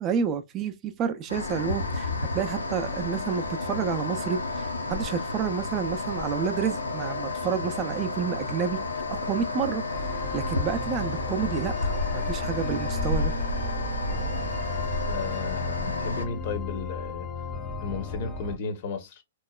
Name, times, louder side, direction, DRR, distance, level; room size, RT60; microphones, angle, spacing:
voice 1, 0.0-8.8 9.1-9.8 10.1-13.3, right 7 dB, 30° right, 0.4 m, -30 dB
sound 1, 1.3-16.3, left 3 dB, 90° left, 0.6 m, -31 dB
sound 2, 9.9-18.6, left 1 dB, ahead, 0.7 m, -35 dB
voice 2, 15.0-17.4 17.8-19.2, left 4 dB, 50° left, 0.7 m, -34 dB
3.0 x 2.0 x 2.2 m
hypercardioid pair, 115°, 0 cm